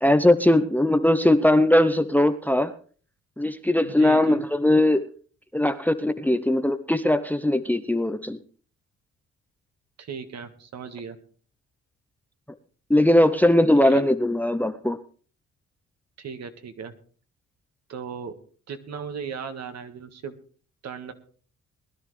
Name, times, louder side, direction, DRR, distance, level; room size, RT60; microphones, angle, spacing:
voice 1, 0.0-2.7 3.4-5.0 5.5-8.4 12.9-15.0, left 1 dB, 5° left, 12 dB, 0.7 m, -20 dB
voice 2, 3.8-4.5 10.0-11.2 13.7-14.0 16.2-16.9 17.9-18.3 18.7-20.3 20.8-21.1, right 6 dB, 60° right, 8 dB, 1.7 m, -37 dB
20.5 x 11.0 x 3.3 m, 0.41 s
cardioid pair, 90°, 30 cm